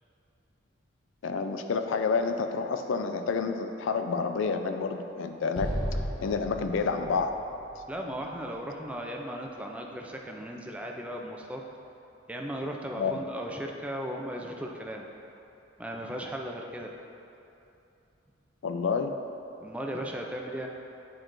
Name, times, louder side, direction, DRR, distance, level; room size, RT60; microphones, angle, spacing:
voice 1, 1.2-5.9 6.2-7.4 13.0-13.2 18.6-19.2, left 4 dB, 75° left, 7 dB, 0.4 m, -29 dB
Explosion, 5.5-8.8, equal, 25° left, 1.0 m, -35 dB
voice 2, 7.9-11.6 12.3-15.1 15.8-16.9 19.6-20.7, equal, 5° right, 0 dB, 0.3 m, -36 dB
8.5 x 4.5 x 2.6 m, 2.8 s
head